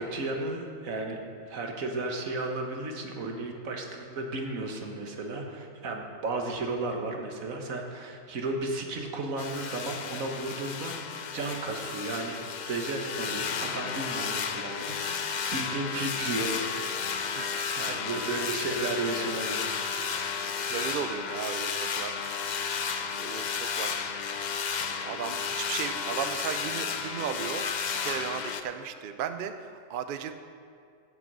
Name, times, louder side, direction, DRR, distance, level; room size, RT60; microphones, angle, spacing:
voice 1, 0.0-12.4 12.6-16.9 17.8-20.0, right 2 dB, 80° right, 2 dB, 1.6 m, -34 dB
sound 1, 9.4-28.6, left 6 dB, 55° left, 0.5 m, -33 dB
voice 2, 14.0-14.5 17.3-18.3 20.6-22.2 23.2-24.0 24.6-24.7 25.0-27.6 28.0-30.3, right 8 dB, 55° right, 9 dB, 0.6 m, -36 dB
16.0 x 6.1 x 5.4 m, 2.4 s
omnidirectional pair, 1.4 m